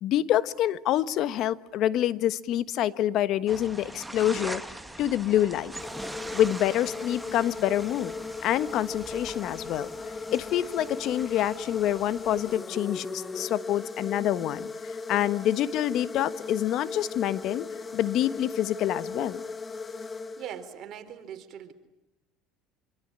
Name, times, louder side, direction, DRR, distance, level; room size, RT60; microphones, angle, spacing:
voice 1, 0.0-5.7 6.3-8.1 8.4-9.9 10.3-17.6 17.9-19.4, left 12 dB, 55° left, 14 dB, 1.3 m, -27 dB
sound 1, 3.5-12.6, right 2 dB, 10° right, 1.6 m, -42 dB
sound 2, 5.7-20.9, left 4 dB, 20° left, 1.2 m, -38 dB
voice 2, 20.4-21.7, right 10 dB, 50° right, 7 dB, 4.1 m, -41 dB
26.5 x 24.5 x 8.9 m, 0.92 s
supercardioid pair, 105°, 0 cm